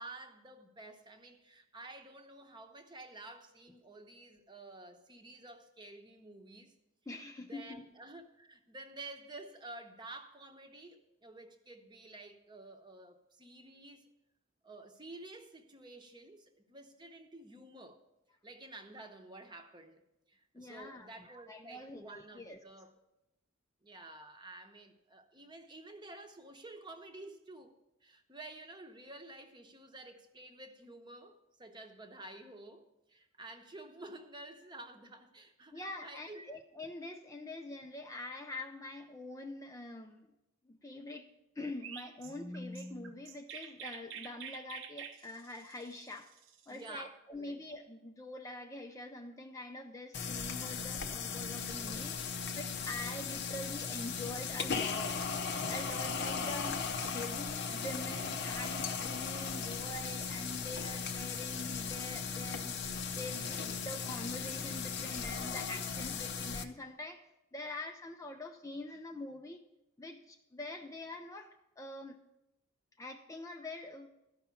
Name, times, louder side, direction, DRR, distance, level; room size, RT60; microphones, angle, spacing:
voice 1, 0.0-6.7 7.4-14.0 14.6-18.0 18.4-20.0 20.3-23.0 23.8-27.7 28.0-36.5 46.7-47.6, right 2 dB, 20° right, 0.9 m, -51 dB
voice 2, 7.1-7.9 20.5-21.1 21.5-22.6 35.7-40.3 40.7-46.3 46.7-55.2 55.7-62.8 63.2-67.2 67.5-69.6 70.0-72.2 73.0-74.1, left 2 dB, 15° left, 0.5 m, -45 dB
Chirp tweet, 41.8-47.0, right 7 dB, 65° right, 0.8 m, -48 dB
sound 1, 50.1-66.6, left 5 dB, 55° left, 0.6 m, -37 dB
13.0 x 5.6 x 6.9 m
head